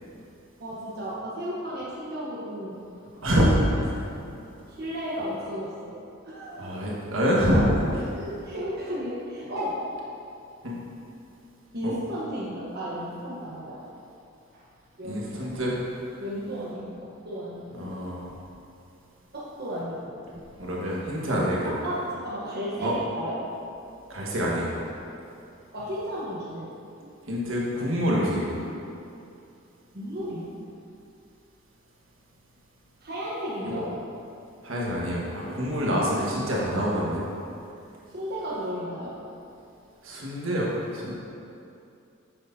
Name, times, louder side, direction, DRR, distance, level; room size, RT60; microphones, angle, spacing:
voice 1, 0.6-2.8 4.7-6.7 7.9-9.8 11.7-13.8 14.5-14.6 15.0-15.6 16.2-17.9 19.3-20.2 21.6-23.5 25.7-26.7 27.0-27.1 29.9-30.5 33.0-33.9 38.1-39.1, equal, 50° right, -7 dB, 1.1 m, -34 dB
voice 2, 3.2-3.6 3.8-3.9 6.6-8.0 10.6-10.7 11.8-11.9 15.0-15.8 17.8-18.2 20.6-21.6 22.8-22.9 24.1-24.7 27.3-28.5 33.6-33.8 34.6-37.2 40.0-41.1, equal, 75° right, -5 dB, 1.5 m, -26 dB
9.3 x 6.6 x 2.8 m, 2.6 s
head